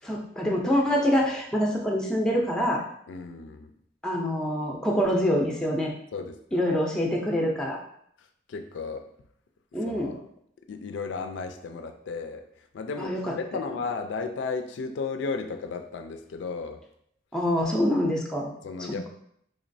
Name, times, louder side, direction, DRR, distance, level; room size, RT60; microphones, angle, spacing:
voice 1, 0.0-2.8 4.0-5.9 6.5-7.8 9.7-10.1 13.0-13.4 17.3-18.5 18.8-19.1, equal, 5° left, -1 dB, 0.5 m, -25 dB
voice 2, 3.1-3.7 6.1-6.6 8.5-9.1 9.9-10.2 10.7-12.4 12.7-16.8 18.6-19.1, left 4 dB, 75° left, 7 dB, 0.3 m, -34 dB
3.9 x 3.0 x 2.6 m, 0.70 s
head